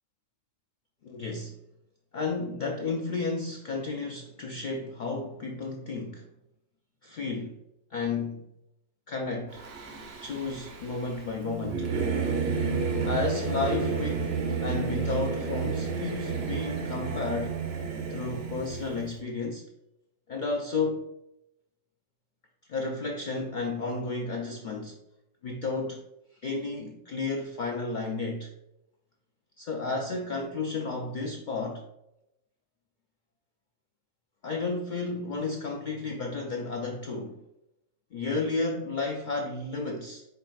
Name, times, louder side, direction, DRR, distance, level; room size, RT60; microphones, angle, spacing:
voice 1, 1.0-1.5 2.1-6.3 7.0-7.6 7.9-8.5 9.1-9.6 10.2-11.9 13.0-14.3 14.6-17.6 18.1-19.6 20.3-21.1 22.7-25.0 25.4-26.0 26.4-28.5 29.6-31.8 34.4-37.4 38.1-40.3, left 3 dB, 65° left, 1 dB, 0.4 m, -32 dB
Singing / Musical instrument, 9.5-19.1, right 5 dB, 60° right, 0.9 m, -31 dB
4.6 x 4.2 x 2.3 m, 0.85 s
omnidirectional pair, 1.3 m